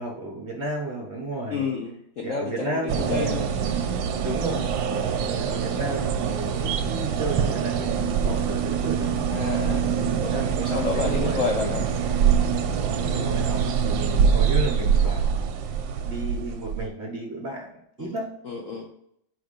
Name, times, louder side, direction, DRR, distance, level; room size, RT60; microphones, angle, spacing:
voice 1, 0.0-1.7 2.2-3.4 4.2-9.1 9.9-11.9 13.1-15.5 16.1-17.7 18.0-18.3, right 2 dB, 45° right, 0 dB, 1.0 m, -33 dB
voice 2, 1.5-3.5 4.5-4.6 9.3-9.9 10.2-11.8 13.0-13.1 18.0-18.1 18.4-18.9, left 5 dB, 65° left, 0 dB, 0.8 m, -30 dB
sound 1, 2.9-16.9, right 7 dB, 85° right, 1.4 m, -24 dB
5.1 x 3.6 x 5.1 m, 0.73 s
omnidirectional pair, 2.1 m